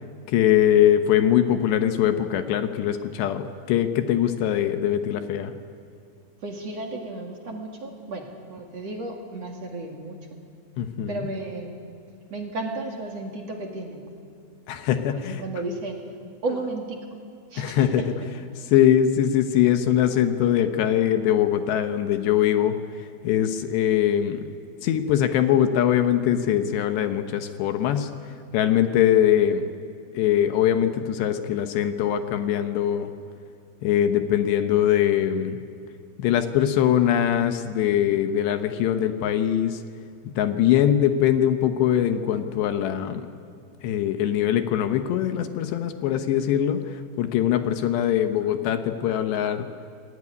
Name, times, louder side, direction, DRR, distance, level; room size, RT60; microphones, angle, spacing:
voice 1, 0.3-5.5 10.8-11.3 14.7-15.4 17.6-18.0 18.6-22.7 23.2-24.5 24.8-28.1 28.5-29.7 30.1-33.1 33.8-35.6 36.2-39.8 40.4-43.3 43.8-49.7, left 10 dB, 75° left, 7 dB, 3.0 m, -22 dB
voice 2, 6.4-10.2 11.1-11.8 12.3-14.1 15.4-16.0 16.4-17.0 17.5-18.3, right 2 dB, 45° right, 1 dB, 2.5 m, -33 dB
27.5 x 19.5 x 9.8 m, 2.4 s
omnidirectional pair, 5.4 m